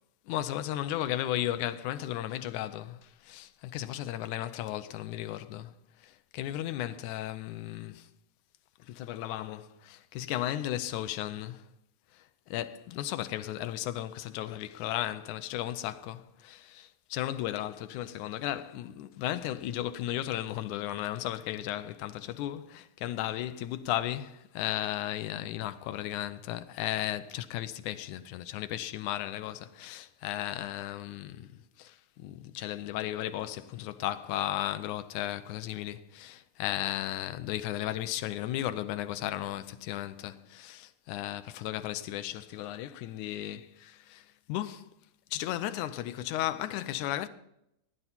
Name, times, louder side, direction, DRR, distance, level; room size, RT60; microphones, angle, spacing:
voice 1, 0.3-5.7 6.0-8.1 8.8-11.6 12.1-44.9 45.3-47.3, left 13 dB, 85° left, 2.1 m, -35 dB
16.5 x 10.0 x 4.2 m
omnidirectional pair, 3.5 m